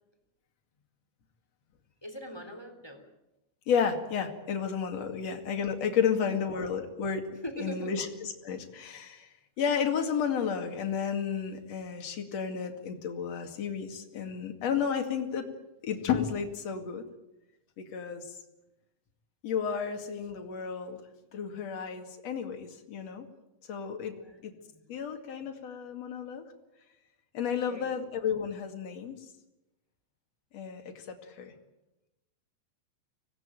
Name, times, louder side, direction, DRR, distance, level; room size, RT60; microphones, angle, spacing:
voice 1, 2.0-3.0 4.9-5.0 7.4-7.9 24.1-24.4 24.7-24.8 27.4-27.9, equal, 5° left, 6 dB, 2.6 m, -41 dB
voice 2, 3.7-7.3 7.6-9.3 9.6-15.4 15.8-17.0 17.8-18.3 19.4-21.0 21.3-23.3 23.7-24.1 24.4-24.5 24.9-26.4 27.3-29.2 30.5-30.8 31.1-31.5, left 7 dB, 45° left, 4 dB, 2.7 m, -32 dB
25.0 x 18.5 x 9.0 m, 0.98 s
omnidirectional pair, 5.3 m